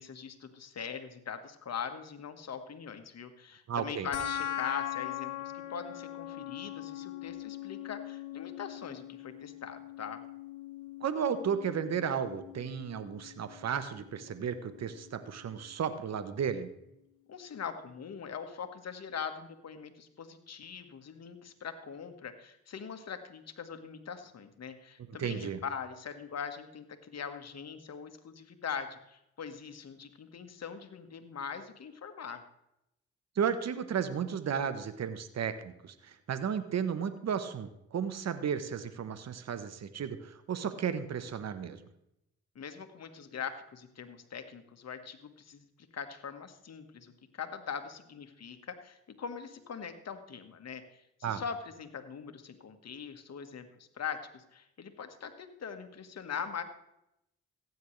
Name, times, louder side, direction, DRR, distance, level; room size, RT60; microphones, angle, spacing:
voice 1, 0.0-10.2 17.3-32.4 42.5-45.6 45.9-47.1 47.4-56.6, left 6 dB, 55° left, 8 dB, 1.5 m, -42 dB
voice 2, 3.7-4.1 11.0-16.7 25.1-25.6 33.4-41.9 51.2-51.4, right 7 dB, 60° right, 12 dB, 1.0 m, -34 dB
sound 1, 4.1-15.1, left 12 dB, 80° left, 1.2 m, -41 dB
15.5 x 9.4 x 3.2 m, 0.82 s
supercardioid pair, 50°, 30 cm